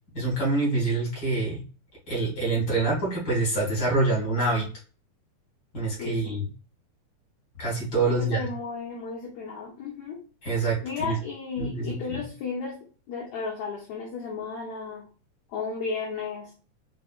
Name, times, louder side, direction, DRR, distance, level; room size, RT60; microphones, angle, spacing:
voice 1, 0.1-1.6 2.1-4.6 5.7-6.4 7.6-8.5 10.4-11.2 11.6-11.9, right 3 dB, 35° left, -4 dB, 1.7 m, -26 dB
voice 2, 6.0-6.4 8.1-10.2 10.8-12.8 13.1-15.1 15.5-16.5, left 5 dB, 70° left, -3 dB, 1.7 m, -34 dB
5.4 x 3.2 x 2.3 m, 0.38 s
omnidirectional pair, 4.3 m